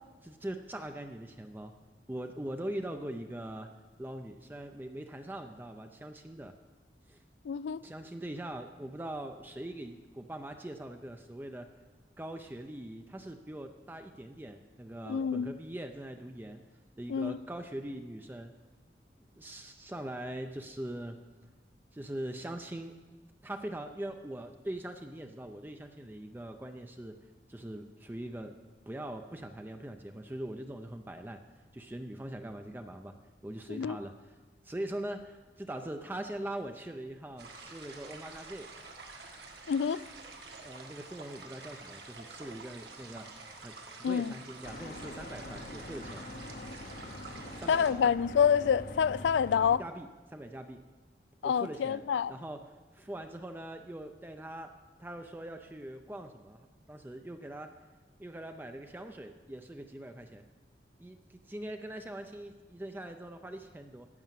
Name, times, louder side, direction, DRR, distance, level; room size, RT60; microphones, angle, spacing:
voice 1, 0.2-1.7 2.1-3.7 4.0-6.5 7.1-7.2 7.8-11.7 12.2-16.6 17.0-18.5 19.4-21.2 21.9-23.0 23.4-27.2 27.5-28.6 28.9-31.4 31.7-33.1 33.4-34.1 34.6-38.7 40.6-43.4 43.6-46.3 47.6-48.1 49.8-50.8 51.4-54.7 55.0-57.8 58.2-60.4 61.0-64.1, right 1 dB, 10° right, 0.5 m, -42 dB
voice 2, 7.5-7.8 15.1-15.5 17.1-17.4 33.7-34.0 39.7-40.0 44.0-44.3 47.7-49.8 51.4-52.3, left 7 dB, 85° left, 0.3 m, -27 dB
sound 1, 37.4-47.9, right 3 dB, 65° right, 1.6 m, -49 dB
sound 2, 44.6-49.8, left 1 dB, 55° left, 0.9 m, -44 dB
11.0 x 8.5 x 7.5 m
head